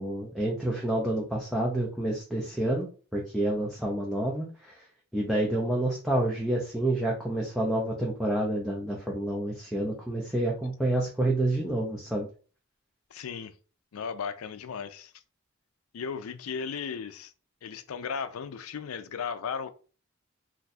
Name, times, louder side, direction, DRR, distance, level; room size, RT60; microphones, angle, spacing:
voice 1, 0.0-2.9 3.1-4.8 5.1-12.3, right 1 dB, ahead, 0.5 m, -28 dB
voice 2, 13.1-13.6 13.9-15.1 15.9-17.3 17.6-19.7, left 6 dB, 85° left, 0.4 m, -36 dB
2.6 x 2.3 x 4.0 m
head